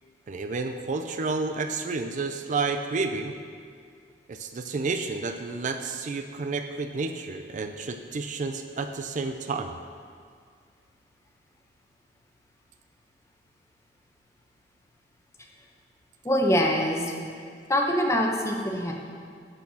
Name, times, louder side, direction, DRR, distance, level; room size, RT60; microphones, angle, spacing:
voice 1, 0.3-3.4 4.3-9.8, right 4 dB, 45° right, 7 dB, 0.4 m, -30 dB
voice 2, 16.2-17.1 17.7-18.9, equal, 15° left, 1 dB, 0.9 m, -24 dB
11.0 x 4.6 x 6.2 m, 2.1 s
head